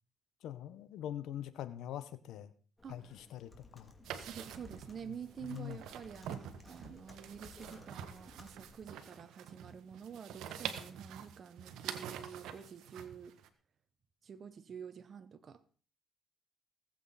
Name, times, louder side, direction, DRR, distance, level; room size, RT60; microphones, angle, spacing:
voice 1, 0.4-2.5 2.9-3.9 5.5-5.8, left 11 dB, 85° left, 14 dB, 1.0 m, -43 dB
Computer keyboard, 2.8-9.0, left 3 dB, 20° left, 2.6 m, -58 dB
sound 1, 4.0-13.5, right 9 dB, 85° right, 1.2 m, -46 dB
voice 2, 4.2-13.3 14.2-15.6, right 7 dB, 50° right, 11 dB, 0.9 m, -48 dB
19.0 x 7.9 x 4.2 m, 0.42 s
cardioid pair, 90°, 0 cm